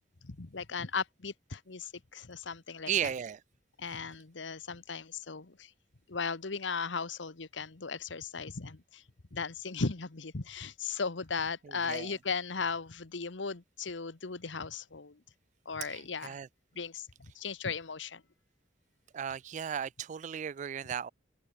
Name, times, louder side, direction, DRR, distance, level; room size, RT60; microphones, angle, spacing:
voice 1, 0.2-3.1 3.8-5.7 6.1-9.0 9.3-15.2 15.6-16.4 16.7-17.1 17.3-18.2, left 5 dB, 90° left, 1.2 m, -37 dB
voice 2, 2.9-3.4 11.6-12.1 15.8-16.5 19.1-21.1, right 8 dB, 40° right, 0.3 m, -35 dB
open air
head